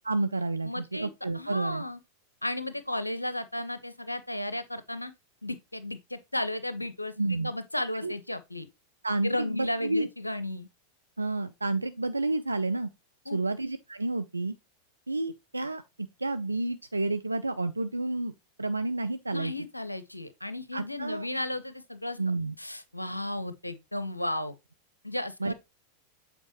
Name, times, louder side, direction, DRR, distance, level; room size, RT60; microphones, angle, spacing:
voice 1, 0.0-1.8 7.2-7.5 8.0-8.1 9.0-10.1 11.2-12.9 13.3-14.5 15.1-15.8 16.2-19.5 20.7-21.3 22.2-22.5 25.4-25.5, right 2 dB, 80° right, 0.3 m, -30 dB
voice 2, 0.6-1.1 1.3-2.0 2.4-5.1 5.4-7.1 7.4-8.7 9.2-10.7 13.3-13.4 19.3-22.2 22.6-24.5 25.0-25.5, left 1 dB, 85° left, 0.5 m, -34 dB
7.9 x 4.5 x 3.0 m
figure-of-eight pair, 90°, 0 cm